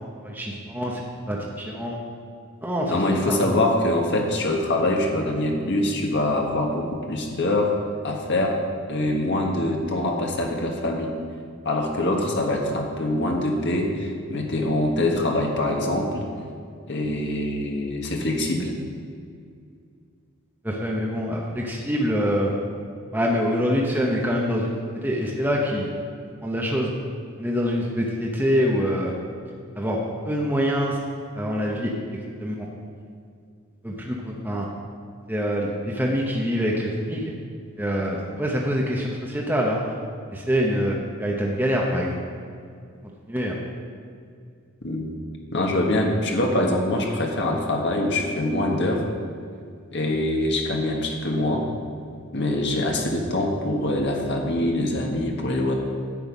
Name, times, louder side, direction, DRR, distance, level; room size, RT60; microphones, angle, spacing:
voice 1, 0.2-2.0 2.6-3.4 20.6-22.5 23.1-24.7 25.0-25.9 26.4-26.9 27.4-29.1 29.8-30.0 30.2-31.0 31.3-31.9 32.4-32.7 33.8-34.7 35.3-37.3 37.8-39.8 40.3-42.2 43.3-43.6, equal, 10° right, -3 dB, 1.0 m, -25 dB
voice 2, 2.9-7.7 8.0-8.6 8.9-11.1 11.6-16.3 16.9-18.7 44.8-45.1 45.5-49.0 49.9-51.7 52.3-55.7, left 1 dB, 55° left, 1 dB, 1.6 m, -24 dB
11.0 x 8.0 x 5.2 m, 2.3 s
head